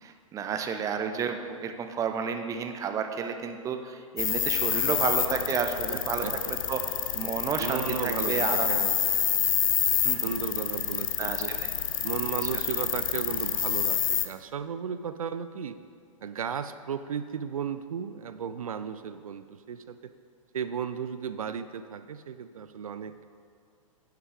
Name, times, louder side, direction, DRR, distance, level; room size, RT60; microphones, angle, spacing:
voice 1, 0.0-6.2 6.7-8.7 10.0-10.4 11.2-11.7 12.4-12.5, right 6 dB, 20° right, 6 dB, 0.6 m, -31 dB
sound 1, 4.2-14.3, left 9 dB, 70° left, 0.6 m, -28 dB
voice 2, 5.9-6.3 7.6-9.3 10.2-11.5 12.0-15.8 16.2-20.1 20.5-23.2, right 7 dB, 80° right, 12 dB, 0.4 m, -35 dB
9.8 x 5.5 x 4.9 m, 2.1 s
hypercardioid pair, 110°, 18 cm